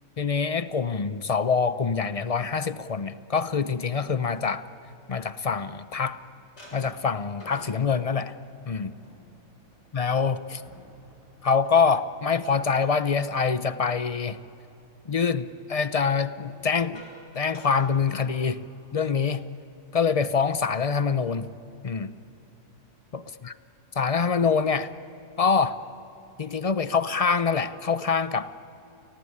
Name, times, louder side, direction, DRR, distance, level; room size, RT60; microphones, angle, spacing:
voice 1, 0.2-4.6 5.1-6.2 6.7-8.3 8.7-8.9 9.9-10.6 11.4-14.4 15.1-17.1 17.3-18.7 18.9-19.4 19.9-21.5 21.8-22.1 23.1-23.5 24.0-24.9 25.4-25.8 26.4-28.5, left 5 dB, 40° left, 14 dB, 0.5 m, -25 dB
sound 1, 5.9-6.1 6.6-14.4 14.7-15.1 16.2-18.8 19.1-19.3 19.6-19.9 20.4-21.1, equal, 55° left, 7.4 m, -53 dB
28.5 x 19.0 x 8.6 m, 3.0 s
omnidirectional pair, 1.4 m